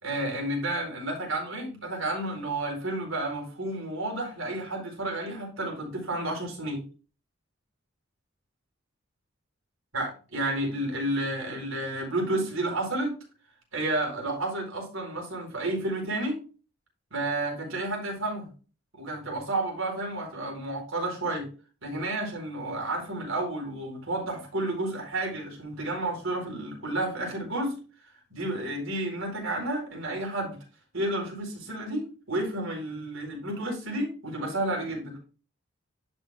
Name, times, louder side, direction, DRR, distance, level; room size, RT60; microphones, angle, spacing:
voice 1, 0.0-6.8 9.9-13.2 13.7-16.4 17.1-18.5 19.0-21.5 21.8-27.8 28.3-30.6 30.9-35.2, right 1 dB, 70° right, 0 dB, 4.3 m, -31 dB
11.0 x 6.5 x 2.5 m, 0.36 s
head